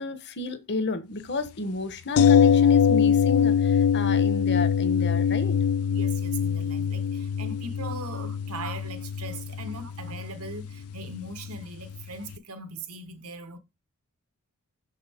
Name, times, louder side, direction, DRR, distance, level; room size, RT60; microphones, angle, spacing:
voice 1, 0.0-5.6, left 3 dB, 50° left, 1.2 m, -32 dB
sound 1, 2.2-12.0 12.3-12.4, left 7 dB, 75° left, 0.4 m, -23 dB
voice 2, 5.9-13.6, right 2 dB, 80° right, 1.4 m, -39 dB
6.5 x 6.4 x 3.6 m
head